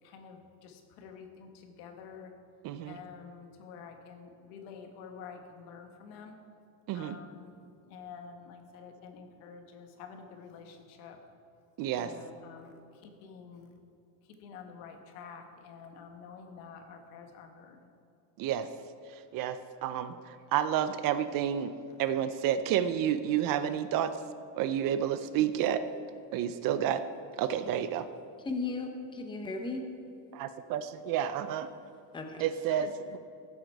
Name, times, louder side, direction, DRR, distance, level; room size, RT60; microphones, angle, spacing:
voice 1, 0.0-2.3 2.8-6.4 6.9-11.2 11.9-13.7 14.2-17.9, left 6 dB, 85° left, 5 dB, 1.6 m, -49 dB
voice 2, 2.6-3.0 6.9-7.2 11.8-12.1 18.4-18.7 19.3-21.7 22.0-24.2 24.5-25.8 26.3-27.0 27.4-28.1 30.3-31.7 32.4-33.2, right 10 dB, 50° right, 12 dB, 0.5 m, -30 dB
voice 3, 28.4-29.8 32.1-32.8, left 3 dB, 10° left, 4 dB, 0.7 m, -36 dB
14.5 x 8.0 x 4.6 m, 2.6 s
cardioid pair, 165°, 45 cm